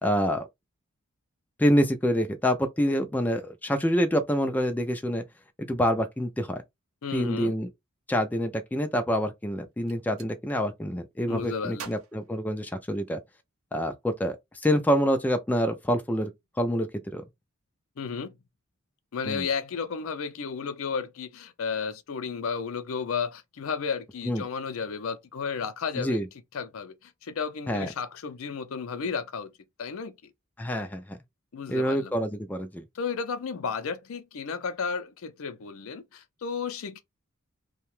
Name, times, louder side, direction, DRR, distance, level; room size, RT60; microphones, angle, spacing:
voice 1, 0.0-0.5 1.6-5.2 5.7-6.6 7.1-7.7 8.1-13.2 13.7-16.3 16.6-17.2 19.2-19.5 24.2-24.4 26.0-26.3 27.7-27.9 30.6-31.2 31.7-32.8, equal, 10° left, 0.3 m, -26 dB
voice 2, 7.0-7.5 11.3-12.0 18.0-18.4 19.1-26.2 26.5-29.5 29.8-30.2 31.5-32.1 32.9-37.0, left 5 dB, 65° left, 0.5 m, -33 dB
Gunshot gunfire, 9.7-10.3 11.7-13.2, right 7 dB, 70° right, 0.6 m, -46 dB
2.8 x 2.2 x 3.0 m
head